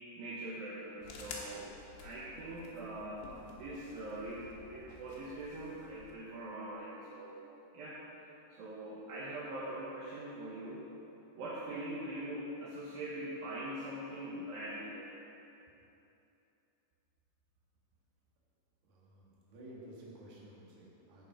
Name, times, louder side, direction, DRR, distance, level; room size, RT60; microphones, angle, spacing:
voice 1, 0.2-1.7 2.0-7.4 7.7-8.0 8.5-10.9 11.4-15.0, right 1 dB, 70° right, -7 dB, 2.6 m, -42 dB
sound 1, 1.0-6.2, left 4 dB, 85° left, 3.3 m, -51 dB
voice 2, 18.8-21.3, right 1 dB, 55° right, -5 dB, 2.7 m, -53 dB
14.0 x 5.3 x 4.9 m, 2.9 s
omnidirectional pair, 4.8 m